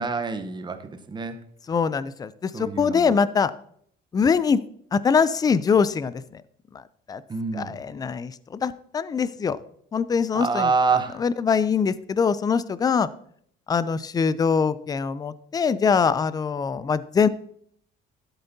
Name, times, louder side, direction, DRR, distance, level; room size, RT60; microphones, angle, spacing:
voice 1, 0.0-1.4 2.5-3.1 7.3-7.8 10.3-11.2, right 4 dB, 20° right, 8 dB, 0.8 m, -26 dB
voice 2, 1.7-3.5 4.1-4.6 4.9-6.4 7.1-7.2 7.5-9.6 9.9-10.7 11.2-13.1 13.7-17.3, left 6 dB, 20° left, 16 dB, 0.3 m, -23 dB
13.0 x 7.9 x 2.7 m, 0.65 s
cardioid pair, 125°, 21 cm